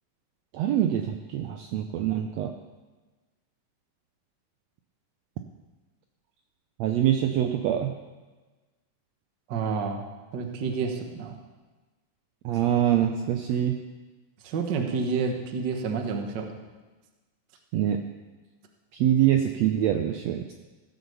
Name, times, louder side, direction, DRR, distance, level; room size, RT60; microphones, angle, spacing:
voice 1, 0.5-2.5 6.8-7.9 12.4-13.7 17.7-18.0 18.9-20.4, right 11 dB, 90° right, 6 dB, 1.5 m, -24 dB
voice 2, 9.5-11.4 14.4-16.5, right 5 dB, 60° right, 4 dB, 1.1 m, -29 dB
16.0 x 7.9 x 6.9 m, 1.3 s
omnidirectional pair, 3.9 m